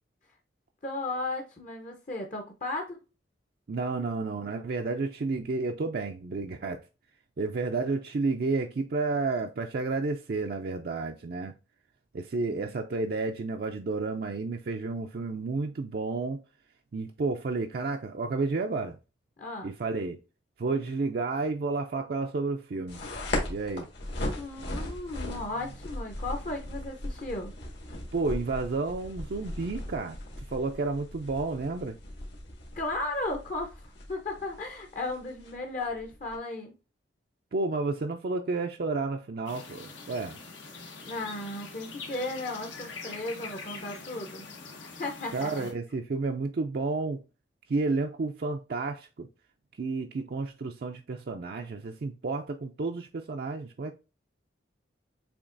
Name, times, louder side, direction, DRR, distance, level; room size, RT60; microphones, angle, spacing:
voice 1, 0.8-3.0 19.4-19.7 24.3-27.5 32.7-36.7 41.0-44.5 44.8-45.7, left 2 dB, 45° left, 0.7 m, -35 dB
voice 2, 3.7-6.8 7.4-11.5 12.1-16.4 16.9-19.0 19.6-20.2 20.6-23.0 23.5-23.9 28.1-32.0 37.5-40.4 45.3-47.2 47.7-49.3 49.7-54.0, right 3 dB, 55° right, 0.4 m, -31 dB
sound 1, 22.9-36.4, left 1 dB, 70° left, 1.7 m, -38 dB
sound 2, 39.5-45.7, left 4 dB, 90° left, 1.3 m, -44 dB
7.0 x 2.9 x 2.5 m
head